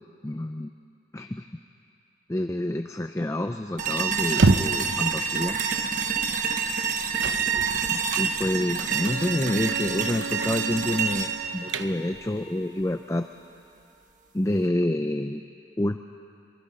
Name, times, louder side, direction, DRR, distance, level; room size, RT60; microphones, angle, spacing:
voice 1, 0.2-0.7 1.1-1.5 2.3-5.6 7.9-13.3 14.3-15.4 15.8-16.0, left 1 dB, 15° left, 7 dB, 0.4 m, -28 dB
sound 1, 3.8-12.8, right 6 dB, 40° right, 1.1 m, -28 dB
sound 2, 4.3-4.9 5.6-5.8 6.2-6.3 7.2-8.3 8.8-9.1 9.5-9.8 10.2-10.5 10.8-10.9 11.4-12.2, right 3 dB, 85° right, 0.7 m, -26 dB
Bowed string instrument, 8.8-12.4, right 6 dB, 60° right, 0.4 m, -37 dB
23.5 x 23.5 x 5.4 m, 2.6 s
head